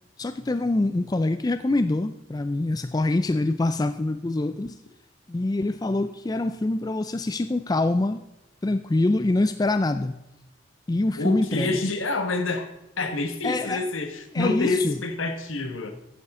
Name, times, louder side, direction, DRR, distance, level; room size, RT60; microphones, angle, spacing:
voice 1, 0.2-4.8 5.3-8.2 8.6-10.2 10.9-11.8 13.4-13.8 14.3-15.0, left 2 dB, 20° left, 0.3 m, -25 dB
voice 2, 11.2-12.7 13.0-15.9, left 3 dB, 75° left, 1.4 m, -27 dB
13.5 x 9.8 x 3.7 m
head